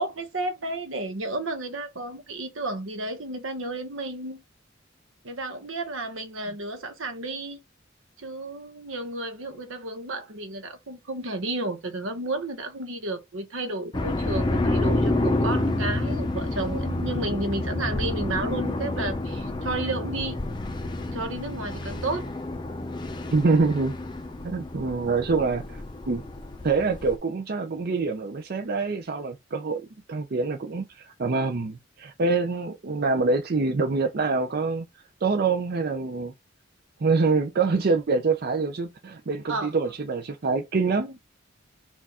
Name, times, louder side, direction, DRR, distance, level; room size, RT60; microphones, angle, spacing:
voice 1, 0.0-4.4 5.2-7.6 8.2-20.4 21.1-22.3 39.5-39.7, right 2 dB, 80° right, 1.0 m, -32 dB
sound 1, 13.9-27.2, left 2 dB, 25° left, 0.5 m, -29 dB
voice 2, 23.3-24.0 24.4-26.2 26.6-29.8 30.1-34.9 35.2-36.3 37.0-41.2, right 4 dB, 50° right, 0.5 m, -25 dB
4.5 x 2.4 x 4.1 m
head